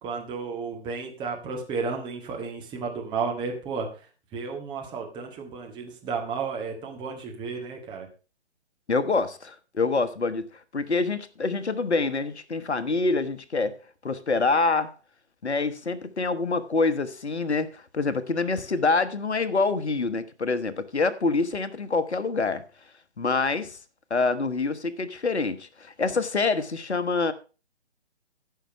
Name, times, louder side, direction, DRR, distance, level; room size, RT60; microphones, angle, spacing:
voice 1, 0.0-3.9 4.3-8.1, right 5 dB, 15° right, 1.7 m, -32 dB
voice 2, 8.9-10.5 10.7-13.8 14.0-14.9 15.4-22.6 23.2-23.8 24.1-27.3, left 3 dB, 75° left, 1.2 m, -26 dB
14.0 x 5.8 x 5.0 m
figure-of-eight pair, 140°, 34 cm